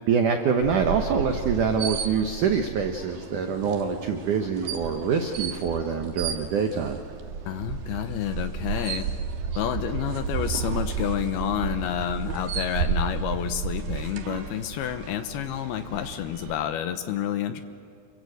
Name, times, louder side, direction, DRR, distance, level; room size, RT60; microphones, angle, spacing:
voice 1, 0.1-7.0, right 6 dB, 85° right, 4 dB, 1.7 m, -25 dB
sound 1, 0.6-16.5, right 6 dB, 60° right, 2.6 m, -33 dB
voice 2, 7.5-9.1 9.6-17.6, left 10 dB, 75° left, 9 dB, 2.4 m, -29 dB
28.5 x 23.5 x 8.0 m, 2.4 s
omnidirectional pair, 5.5 m